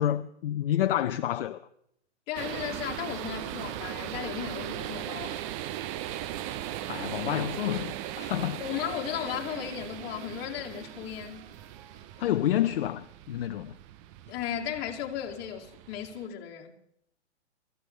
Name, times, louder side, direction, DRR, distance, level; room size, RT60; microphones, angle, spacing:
voice 1, 0.0-1.6 6.9-8.6 12.2-13.8, left 12 dB, 55° left, 0.8 m, -29 dB
voice 2, 2.3-5.4 8.6-11.5 14.3-16.7, left 10 dB, 30° left, 2.6 m, -35 dB
sound 1, 2.3-16.3, right 12 dB, 30° right, 0.7 m, -38 dB
sound 2, 6.8-12.8, right 4 dB, 70° right, 6.0 m, -60 dB
25.5 x 15.0 x 3.3 m
hypercardioid pair, 130°, 34 cm